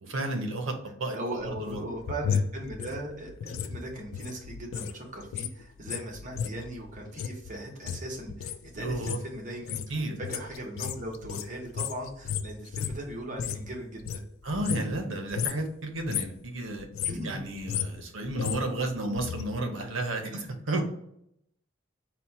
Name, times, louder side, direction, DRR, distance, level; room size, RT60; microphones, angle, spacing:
voice 1, 0.0-1.8 8.7-9.2 9.9-10.2 14.4-16.9 17.2-20.8, right 2 dB, 70° right, 4 dB, 0.8 m, -32 dB
voice 2, 1.1-14.2 17.0-17.4 18.2-18.3 20.3-20.4 20.7-20.8, right 1 dB, 35° right, -1 dB, 1.0 m, -39 dB
sound 1, 1.4-5.0 5.2-13.7 14.0-15.1 15.3-15.7 16.0-16.4 16.8-19.4 19.7-19.8, left 7 dB, 75° left, 0.3 m, -34 dB
4.1 x 2.2 x 4.1 m, 0.73 s
head